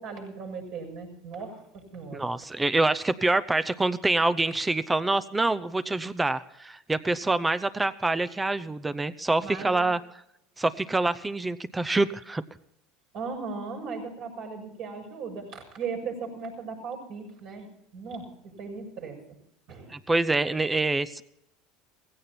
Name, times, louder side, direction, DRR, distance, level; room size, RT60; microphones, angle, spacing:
voice 1, 0.0-2.3 9.4-9.9 13.1-19.4 19.7-19.9, right 5 dB, 55° right, 1 dB, 6.9 m, -38 dB
voice 2, 2.1-10.0 10.6-12.4 19.9-21.2, right 2 dB, 10° right, 15 dB, 0.7 m, -26 dB
17.5 x 16.0 x 4.4 m, 0.74 s
supercardioid pair, 125°, 0 cm